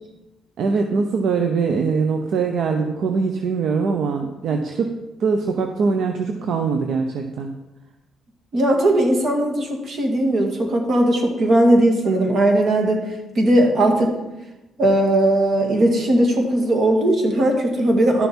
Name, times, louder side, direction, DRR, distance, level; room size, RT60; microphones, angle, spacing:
voice 1, 0.6-7.5, right 5 dB, 70° right, 5 dB, 0.8 m, -22 dB
voice 2, 8.5-13.1 13.4-14.1 14.8-18.3, right 1 dB, 50° right, 2 dB, 2.2 m, -18 dB
11.5 x 6.9 x 4.4 m, 0.99 s
cardioid pair, 90°, 0 cm